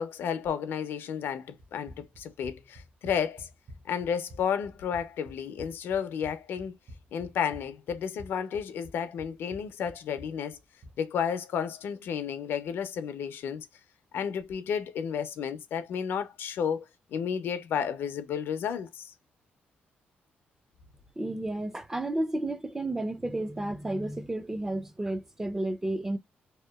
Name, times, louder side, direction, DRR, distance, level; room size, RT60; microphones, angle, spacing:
voice 1, 0.0-3.5 3.9-6.8 7.1-10.6 11.0-13.7 14.1-16.8 17.1-19.1, left 7 dB, 75° left, 0.4 m, -32 dB
Run, 1.6-11.0, equal, 45° right, 0.7 m, -49 dB
voice 2, 21.2-26.2, right 1 dB, 10° right, 0.3 m, -32 dB
2.7 x 2.1 x 2.2 m
cardioid pair, 120°, 4 cm